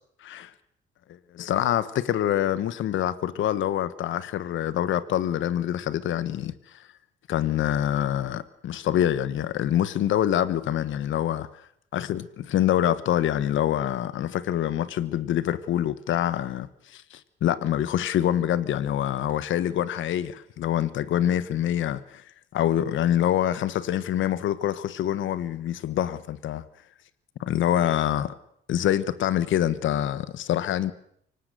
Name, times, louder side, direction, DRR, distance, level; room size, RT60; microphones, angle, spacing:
voice 1, 1.3-6.5 7.3-11.5 11.9-22.2 22.5-26.6 27.4-28.3 28.7-30.9, left 11 dB, 75° left, 1.2 m, -25 dB
24.5 x 18.5 x 6.7 m
cardioid pair, 90°, 20 cm